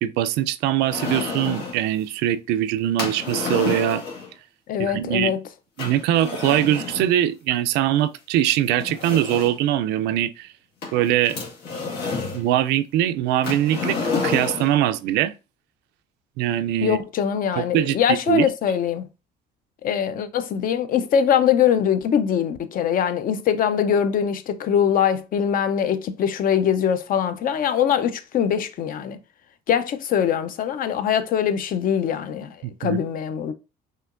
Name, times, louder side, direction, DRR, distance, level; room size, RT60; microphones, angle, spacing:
voice 1, 0.0-4.0 4.8-5.3 5.8-10.5 10.9-11.4 12.3-14.0 14.2-15.3 16.4-17.0 17.6-18.0 18.3-18.5 32.6-33.0, right 12 dB, 90° right, 0.4 m, -22 dB
sound 1, 0.9-1.9 3.0-4.3 5.8-7.1 8.1-8.2 8.8-9.7 10.8-12.4 13.4-14.8, left 4 dB, 85° left, 2.0 m, -29 dB
voice 2, 4.7-5.4 16.8-19.1 19.8-29.2 29.7-32.5 32.8-33.5, left 8 dB, 55° left, 0.6 m, -22 dB
5.7 x 2.9 x 2.5 m
cardioid pair, 110°, 17 cm